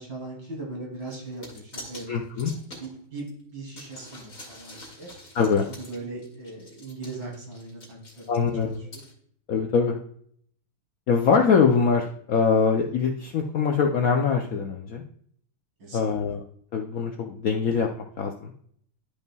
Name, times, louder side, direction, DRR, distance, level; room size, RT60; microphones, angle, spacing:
voice 1, 0.0-2.1 2.8-5.1 5.7-8.2 8.9-9.0 15.8-16.2, right 2 dB, 60° right, -3 dB, 3.5 m, -39 dB
sound 1, 1.0-3.3 3.7-9.1, left 1 dB, 40° left, 2.6 m, -46 dB
voice 2, 2.1-2.5 5.3-5.6 8.3-8.8 9.5-10.0 11.1-15.0 15.9-16.4 16.7-18.5, left 5 dB, 85° left, 2 dB, 0.7 m, -23 dB
12.0 x 5.3 x 2.3 m, 0.63 s
omnidirectional pair, 2.3 m